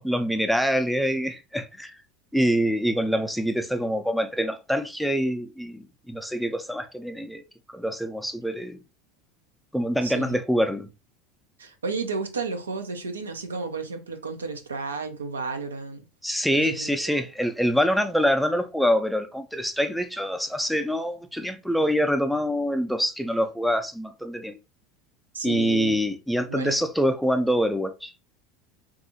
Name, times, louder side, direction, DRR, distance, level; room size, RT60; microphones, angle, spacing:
voice 1, 0.0-1.9 2.3-7.4 7.7-8.8 9.7-10.9 16.2-24.6 25.4-28.1, equal, ahead, 0.4 m, -25 dB
voice 2, 10.0-10.4 11.6-16.0 16.5-17.3 25.3-26.0 26.5-26.8, right 4 dB, 85° right, 0.4 m, -32 dB
2.7 x 2.3 x 2.7 m
figure-of-eight pair, 75°, 0 cm